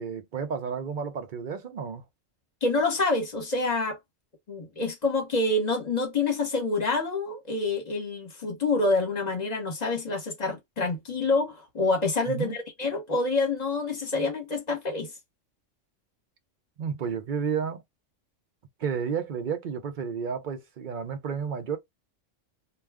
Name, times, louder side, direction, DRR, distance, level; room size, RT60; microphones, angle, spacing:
voice 1, 0.0-2.0 12.3-12.5 16.8-17.8 18.8-21.8, right 6 dB, 55° right, 0.6 m, -31 dB
voice 2, 2.6-4.0 4.5-15.1, left 3 dB, 35° left, 1.1 m, -27 dB
2.4 x 2.2 x 3.4 m
omnidirectional pair, 1.3 m